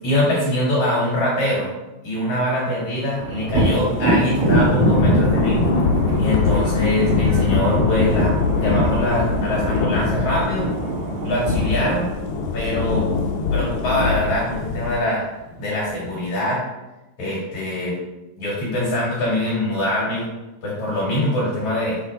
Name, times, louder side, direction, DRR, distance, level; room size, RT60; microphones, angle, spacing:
voice 1, 0.0-1.7 2.0-5.6 6.2-10.7 11.2-12.1 12.5-13.1 13.5-15.2 15.6-16.6 17.2-18.0 18.4-20.3 20.6-22.0, left 1 dB, 50° left, -6 dB, 2.5 m, -23 dB
sound 1, 3.2-12.1, right 4 dB, 80° right, 2.7 m, -32 dB
Thunder, 3.4-11.1 14.8-14.9 15.3-16.2, right 1 dB, 60° right, 1.6 m, -24 dB
Thunder / Rain, 4.5-15.0, left 4 dB, 85° left, 2.3 m, -22 dB
7.3 x 4.4 x 4.6 m, 1.0 s
omnidirectional pair, 5.7 m